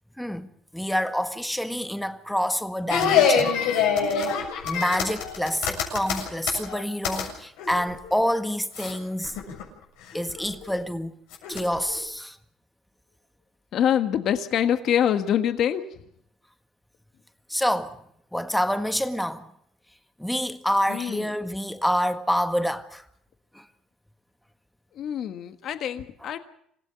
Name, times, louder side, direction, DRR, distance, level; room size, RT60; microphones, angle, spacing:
voice 1, 0.2-3.6 4.1-4.3 4.6-9.3 10.1-11.1 11.5-12.4 17.5-18.0 18.3-19.5 20.2-23.0 23.5-23.7 26.2-26.3, equal, 5° left, 1.6 m, -27 dB
sound 1, 2.9-7.3 7.6-8.1 8.7-9.0 9.2-9.6 10.1-10.7 11.3-12.0, left 6 dB, 85° left, 7.1 m, -25 dB
voice 2, 13.7-15.8 20.9-21.3 24.9-26.4, left 9 dB, 60° left, 1.5 m, -25 dB
27.0 x 16.0 x 7.0 m
cardioid pair, 100°, 0 cm